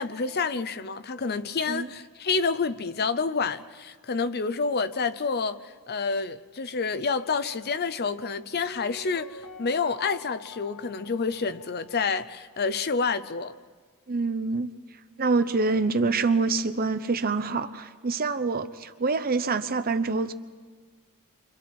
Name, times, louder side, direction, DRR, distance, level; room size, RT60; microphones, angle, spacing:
voice 1, 0.0-13.5, left 4 dB, 45° left, 0.7 m, -28 dB
Piano, 8.6-12.4 12.7-12.8, left 2 dB, 80° left, 1.4 m, -47 dB
voice 2, 14.1-14.7 15.2-20.3, right 4 dB, 40° right, 0.8 m, -26 dB
29.0 x 25.5 x 4.4 m
head